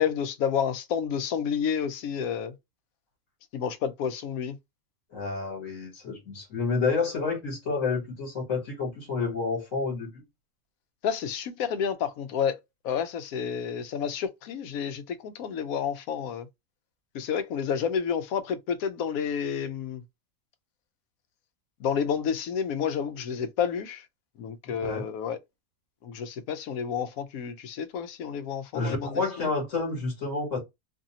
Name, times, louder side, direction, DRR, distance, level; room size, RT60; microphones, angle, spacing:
voice 1, 0.0-2.5 3.5-4.6 11.0-12.6 12.8-16.5 17.1-20.0 21.8-24.0 24.4-25.4 26.0-29.5, left 7 dB, 85° left, 1.0 m, -30 dB
voice 2, 5.1-10.2 24.8-25.1 28.7-30.6, left 4 dB, 65° left, 1.6 m, -29 dB
2.7 x 2.6 x 2.7 m
omnidirectional pair, 1.4 m